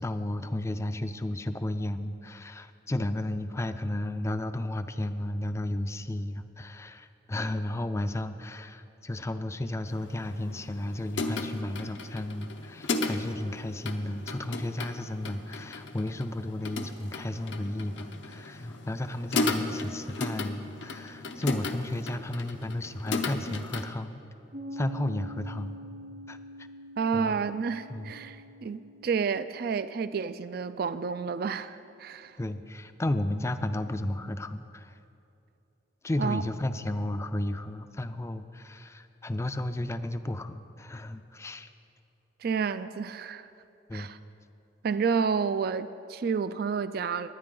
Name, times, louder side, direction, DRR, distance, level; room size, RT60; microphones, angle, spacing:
voice 1, 0.0-24.2 24.7-25.8 26.3-26.4 27.1-27.5 27.9-28.1 32.4-34.9 36.0-41.7 43.9-44.1, left 1 dB, 15° left, 10 dB, 0.4 m, -33 dB
sound 1, 9.9-23.9, left 3 dB, 80° left, 0.8 m, -35 dB
Piano, 24.5-31.7, right 1 dB, 75° right, 2.9 m, -46 dB
voice 2, 27.0-32.4 36.2-36.4 42.4-43.5 43.9-44.2 44.8-47.3, right 5 dB, 55° right, 13 dB, 0.3 m, -30 dB
20.5 x 9.5 x 3.8 m, 2.7 s
head